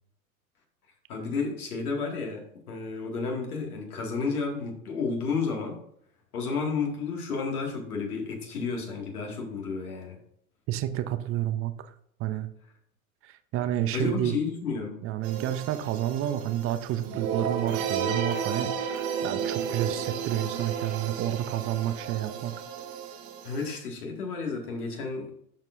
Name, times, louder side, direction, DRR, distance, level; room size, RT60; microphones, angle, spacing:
voice 1, 1.1-5.8 6.3-10.2 13.9-15.0 23.4-25.3, left 4 dB, 80° left, 1 dB, 2.2 m, -31 dB
voice 2, 10.7-11.9 12.2-12.5 13.2-14.4 15.0-22.5, right 12 dB, 30° right, 11 dB, 0.6 m, -30 dB
sound 1, 15.2-23.8, right 7 dB, 60° right, 1.7 m, -33 dB
11.5 x 4.5 x 2.6 m, 0.69 s
hypercardioid pair, 100°, 44 cm